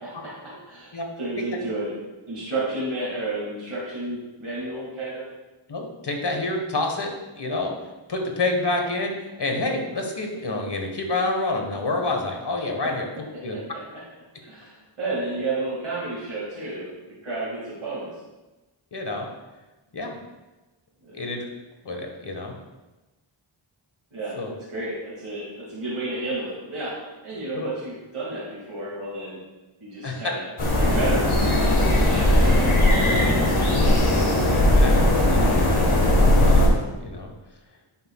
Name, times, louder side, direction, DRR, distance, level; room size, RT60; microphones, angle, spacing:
voice 1, 0.0-1.9 2.3-5.2 12.8-12.9 13.5-13.6 14.4-18.1 21.0-21.2 24.1-26.9 27.2-29.4 29.8-30.5 30.7-32.7, right 2 dB, 80° right, -7 dB, 2.4 m, -31 dB
voice 2, 5.7-7.7 8.1-13.1 13.4-13.6 18.9-19.3 19.9-20.2 21.1-21.5 21.8-22.5 24.4-24.6 27.5-27.7 30.0-30.2 33.6-33.8 34.5-37.3, left 2 dB, 55° left, 2 dB, 1.6 m, -28 dB
sound 1, 30.6-36.7, left 1 dB, 75° left, 1.7 m, -18 dB
10.5 x 5.8 x 2.4 m, 1.1 s
cardioid pair, 45°, 50 cm